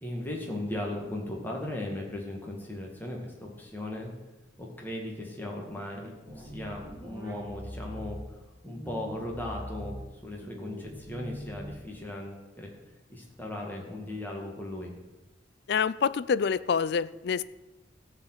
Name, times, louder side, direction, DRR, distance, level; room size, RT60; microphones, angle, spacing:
voice 1, 0.0-4.1 4.6-8.2 8.7-12.7 13.1-14.9, left 1 dB, 10° left, -1 dB, 1.9 m, -37 dB
sound 1, 6.2-8.2 8.6-10.0 10.4-12.0, equal, 10° right, 2.3 m, -42 dB
voice 2, 15.7-17.4, left 6 dB, 55° left, 16 dB, 0.3 m, -27 dB
14.0 x 4.9 x 7.9 m, 1.1 s
head